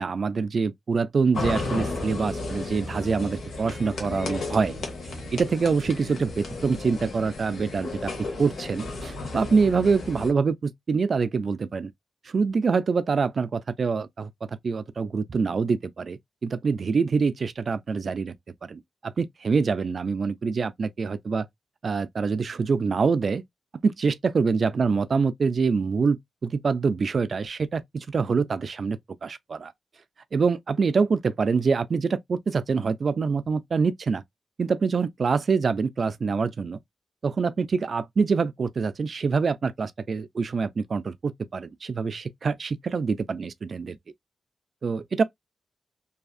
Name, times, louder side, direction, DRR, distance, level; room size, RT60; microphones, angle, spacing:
voice 1, 0.0-4.7 5.3-8.1 8.4-11.9 12.3-18.3 18.6-21.5 21.8-23.4 23.8-26.2 26.4-29.7 30.3-34.2 34.6-36.8 37.2-44.0 44.8-45.2, right 5 dB, 50° right, 0.3 m, -25 dB
sound 1, 1.3-10.3, left 3 dB, 75° left, 1.0 m, -34 dB
2.7 x 2.4 x 2.4 m
wide cardioid pair, 105°, 0 cm